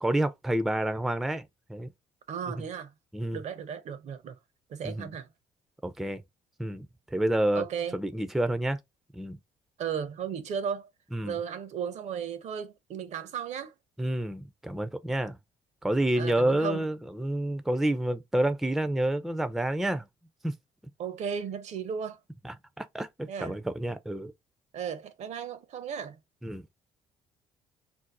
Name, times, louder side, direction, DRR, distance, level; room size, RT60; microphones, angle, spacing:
voice 1, 0.0-1.9 2.5-2.6 3.1-3.4 4.8-5.1 5.8-6.2 6.6-7.6 7.9-8.8 9.1-9.4 11.1-11.4 14.0-15.4 15.8-20.1 20.4-20.6 22.4-24.3 26.4-26.7, right 1 dB, ahead, 0.4 m, -29 dB
voice 2, 2.3-2.9 3.3-4.4 4.7-5.3 7.5-8.0 9.8-10.9 11.2-13.7 16.2-16.8 21.0-22.2 23.3-23.5 24.7-26.2, right 7 dB, 55° right, 0.6 m, -35 dB
2.6 x 2.0 x 4.0 m
supercardioid pair, 65°, 14 cm